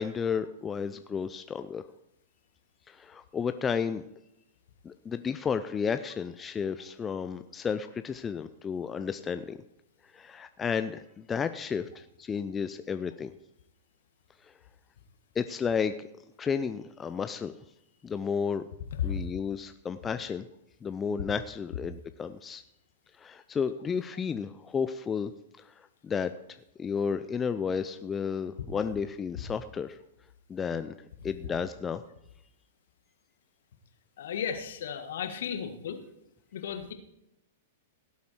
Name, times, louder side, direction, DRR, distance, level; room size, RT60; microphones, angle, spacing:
voice 1, 0.0-1.9 2.9-4.0 4.8-9.6 10.1-13.3 14.4-14.5 15.3-15.9 16.4-17.6 18.0-18.6 19.0-20.5 20.8-22.6 23.2-25.3 25.6-25.7 26.0-26.3 26.8-30.0 30.5-30.9 31.2-32.0, left 6 dB, 20° left, 10 dB, 0.6 m, -32 dB
voice 2, 34.2-36.0 36.5-36.9, left 7 dB, 65° left, 7 dB, 1.7 m, -34 dB
17.0 x 8.3 x 4.5 m, 0.84 s
hypercardioid pair, 105°, 0 cm